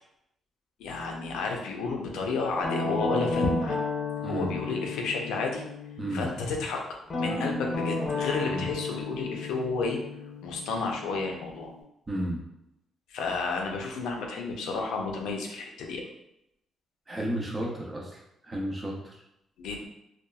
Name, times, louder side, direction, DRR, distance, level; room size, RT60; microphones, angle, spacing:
voice 1, 0.8-3.8 4.2-5.6 6.1-6.8 7.1-10.0 10.4-11.7 13.1-16.0 19.6-19.9, left 3 dB, 85° left, 1 dB, 0.5 m, -31 dB
Guitar, 2.6-6.4 7.1-11.8, left 3 dB, 40° left, 0.6 m, -33 dB
voice 2, 4.2-4.6 6.0-6.3 8.5-8.7 12.1-12.4 17.1-19.2, right 1 dB, 25° right, -1 dB, 0.6 m, -33 dB
2.8 x 2.3 x 2.3 m, 0.85 s
cardioid pair, 90°, 0 cm